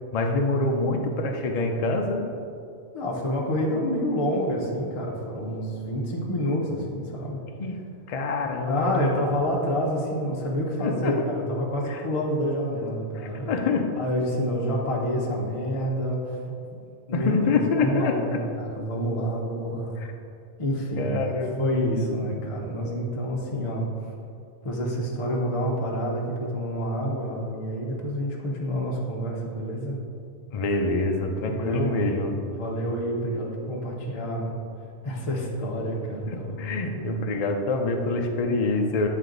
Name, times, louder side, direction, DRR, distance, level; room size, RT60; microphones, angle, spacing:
voice 1, 0.1-2.3 7.6-7.8 8.1-9.0 10.8-11.3 11.9-12.0 13.1-13.9 17.1-18.4 20.0-20.1 21.0-21.8 30.5-32.3 36.3-39.1, left 3 dB, 70° left, 3 dB, 0.3 m, -26 dB
voice 2, 2.9-7.4 8.6-13.5 14.0-16.4 17.1-20.0 20.6-23.9 24.6-30.0 31.5-32.0 32.5-34.5 35.0-37.2, equal, 30° left, -2 dB, 0.7 m, -28 dB
9.3 x 3.3 x 3.8 m, 2.4 s
omnidirectional pair, 1.4 m